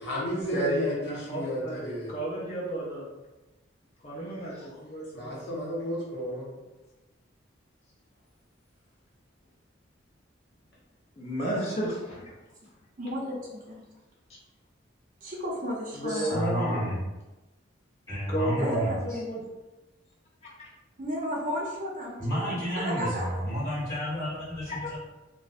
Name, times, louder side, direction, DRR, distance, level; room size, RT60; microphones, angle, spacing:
voice 1, 0.0-2.1 5.1-6.5, equal, 55° left, -5 dB, 0.8 m, -33 dB
voice 2, 0.5-3.1 4.0-5.4 11.2-12.3 16.0-16.9 18.3-19.4 20.4-20.7 24.7-25.0, right 1 dB, 35° left, -6 dB, 0.4 m, -32 dB
voice 3, 13.0-13.8 15.2-16.4 18.6-19.1 21.0-22.6 22.8-23.3, equal, 40° right, -4 dB, 0.6 m, -33 dB
voice 4, 16.1-17.0 18.1-19.2 22.2-25.0, equal, 15° left, -12 dB, 1.4 m, -31 dB
2.5 x 2.0 x 2.4 m, 1.1 s
head